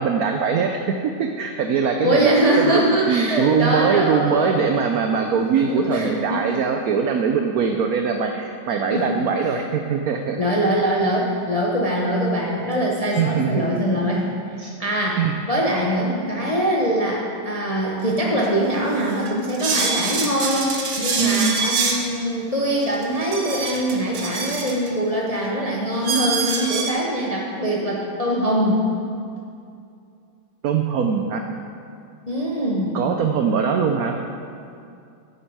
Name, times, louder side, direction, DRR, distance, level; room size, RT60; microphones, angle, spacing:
voice 1, 0.0-10.4 13.1-13.8 14.6-14.7 15.2-15.3 21.2-21.6 30.6-31.5 32.9-34.2, right 6 dB, 90° right, 4 dB, 0.7 m, -22 dB
voice 2, 2.0-4.7 5.7-6.4 8.9-9.2 9.5-9.6 10.4-15.2 15.5-28.8 32.3-33.0, equal, 45° left, -3 dB, 0.5 m, -23 dB
sound 1, 18.4-18.5 19.0-22.0 22.8-24.9 25.4-25.5 26.0-26.9, right 4 dB, 50° right, 0.9 m, -25 dB
9.5 x 8.1 x 4.7 m, 2.5 s
omnidirectional pair, 2.2 m